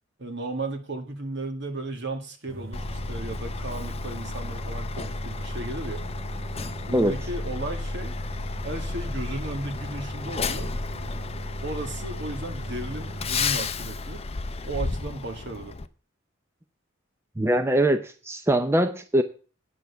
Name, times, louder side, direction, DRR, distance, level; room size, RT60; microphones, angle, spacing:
voice 1, 0.2-6.0 6.9-8.1 8.6-10.8 11.6-14.2 14.6-15.7, right 2 dB, 60° right, 5 dB, 1.9 m, -35 dB
sound 1, 2.5-13.5, right 1 dB, 85° right, 2.1 m, -39 dB
Truck, 2.7-15.9, left 3 dB, 30° left, 0.6 m, -33 dB
voice 2, 17.4-19.2, right 1 dB, 15° right, 8 dB, 0.6 m, -22 dB
9.3 x 6.6 x 7.0 m, 0.37 s
head